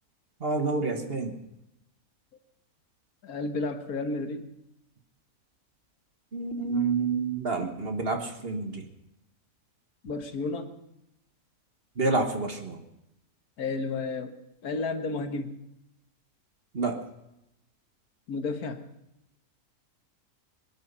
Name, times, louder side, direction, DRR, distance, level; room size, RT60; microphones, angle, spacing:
voice 1, 0.4-1.3 6.3-8.8 12.0-12.8 16.7-17.0, right 3 dB, 40° right, 5 dB, 1.6 m, -28 dB
voice 2, 3.2-4.5 10.0-10.8 13.6-14.3 14.6-15.6 18.3-18.9, left 3 dB, 75° left, 8 dB, 1.7 m, -32 dB
23.0 x 10.0 x 5.5 m, 0.85 s
omnidirectional pair, 1.6 m